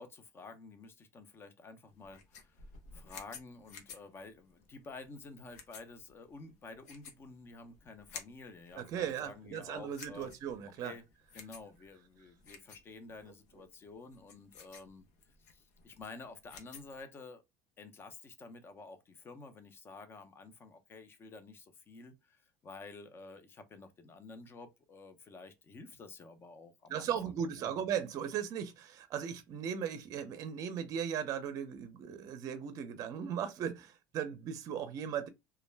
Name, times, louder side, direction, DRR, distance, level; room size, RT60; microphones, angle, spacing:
voice 1, 0.0-2.6 2.9-10.3 10.8-11.0 11.3-15.1 15.4-17.4 17.8-27.7, left 3 dB, 30° left, 0.6 m, -51 dB
sound 1, 1.9-17.0, left 5 dB, 90° left, 0.7 m, -54 dB
voice 2, 8.8-10.9 26.9-35.3, right 8 dB, 45° right, 0.5 m, -37 dB
2.3 x 2.1 x 3.2 m
supercardioid pair, 125°, 8 cm